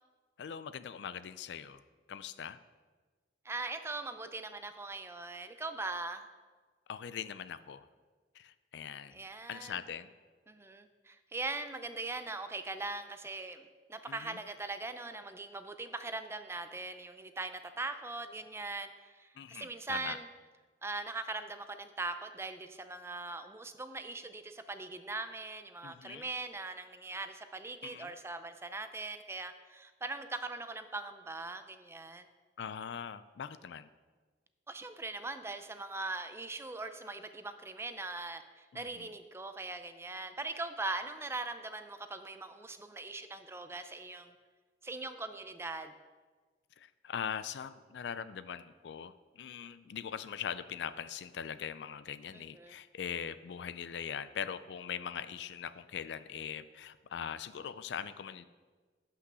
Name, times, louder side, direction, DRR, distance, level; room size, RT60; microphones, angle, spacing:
voice 1, 0.4-1.8 2.1-2.6 6.9-7.9 8.3-10.1 14.1-14.4 19.4-20.2 25.8-26.2 27.8-28.1 32.6-33.9 38.7-39.1 46.8-58.5, left 8 dB, 70° left, 14 dB, 0.4 m, -41 dB
voice 2, 3.4-6.2 9.1-9.8 10.5-20.3 20.8-32.3 34.7-44.3 44.8-45.9 52.3-52.8, right 3 dB, 15° right, 9 dB, 0.4 m, -41 dB
8.3 x 5.6 x 6.1 m, 1.4 s
head